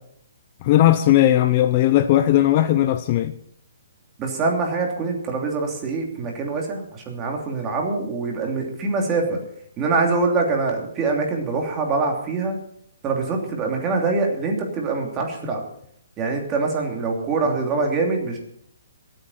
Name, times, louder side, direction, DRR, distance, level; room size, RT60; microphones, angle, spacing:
voice 1, 0.6-3.3, left 13 dB, 30° left, 0.6 m, -17 dB
voice 2, 4.2-9.4 9.8-12.5 13.0-15.6 16.2-18.4, right 3 dB, 15° right, 2.9 m, -24 dB
25.5 x 8.9 x 4.3 m
hypercardioid pair, 165°, 0 cm